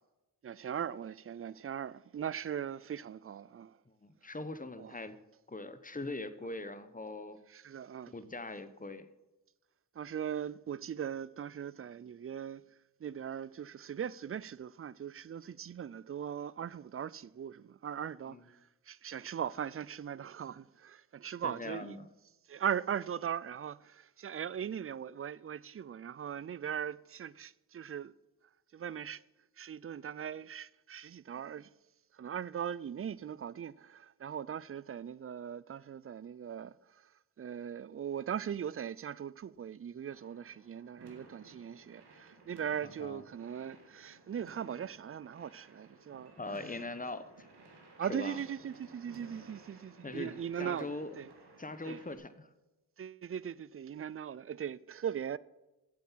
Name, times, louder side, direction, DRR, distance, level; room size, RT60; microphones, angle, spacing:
voice 1, 0.4-3.8 4.8-4.9 7.5-8.1 10.0-12.6 13.0-18.6 18.9-22.0 22.5-28.1 28.7-29.2 29.6-31.7 32.1-37.1 37.4-46.3 48.0-50.9 51.2-51.3 51.8-52.0 53.0-55.4, right 8 dB, 35° right, 0.4 m, -39 dB
voice 2, 4.0-5.2 5.5-7.4 8.1-9.1 18.3-18.5 21.4-22.1 42.8-43.2 46.4-47.5 48.0-48.4 50.0-50.3 50.6-51.2 51.6-52.5, left 2 dB, 20° left, 1.0 m, -41 dB
sound 1, 40.1-52.2, right 3 dB, 85° right, 1.9 m, -57 dB
8.6 x 7.6 x 7.5 m
cardioid pair, 50°, 40 cm